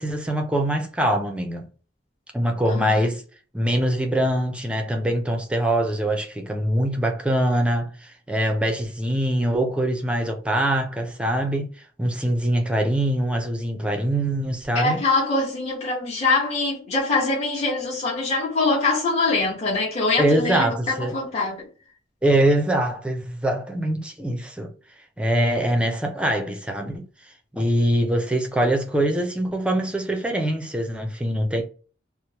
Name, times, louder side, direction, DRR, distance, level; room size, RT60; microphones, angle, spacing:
voice 1, 0.0-1.7 2.3-3.2 3.5-11.7 12.0-15.0 20.2-21.2 22.2-24.7 25.2-27.0 27.5-31.6, right 1 dB, 5° right, 0.5 m, -23 dB
voice 2, 2.7-3.1 14.7-21.7, left 3 dB, 35° left, 1.1 m, -23 dB
3.0 x 2.0 x 2.8 m
head